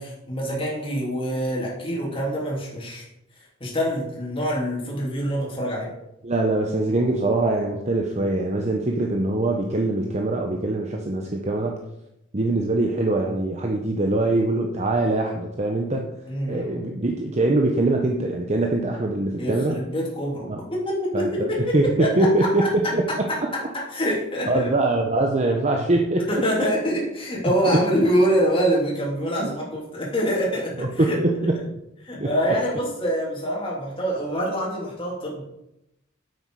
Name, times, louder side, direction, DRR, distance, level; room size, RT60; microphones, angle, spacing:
voice 1, 0.0-3.0 3.6-5.9 16.3-16.9 19.4-22.7 23.1-24.7 26.3-31.2 32.0-35.4, equal, 25° left, -4 dB, 2.9 m, -25 dB
voice 2, 6.2-11.9 12.3-16.1 16.5-19.8 20.5-20.6 21.1-23.3 24.5-26.4 27.7-27.8 29.4-29.5 30.8-31.6 32.2-32.5, right 2 dB, 35° right, 2 dB, 0.9 m, -23 dB
9.9 x 8.0 x 4.8 m, 0.85 s
head